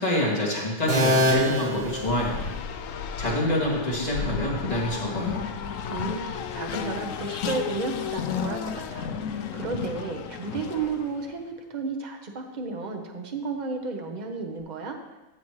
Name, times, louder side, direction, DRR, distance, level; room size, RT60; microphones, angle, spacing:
voice 1, 0.0-2.5 3.2-5.4, left 1 dB, 25° left, -6 dB, 2.4 m, -26 dB
sound 1, 0.9-2.8, equal, 80° right, 2.0 m, -25 dB
Race car auto racing, 1.7-11.3, left 7 dB, 65° left, 0.9 m, -33 dB
voice 2, 5.9-9.1 9.5-15.0, right 4 dB, 35° right, 3 dB, 0.9 m, -33 dB
13.5 x 7.1 x 3.1 m, 1.0 s
omnidirectional pair, 1.7 m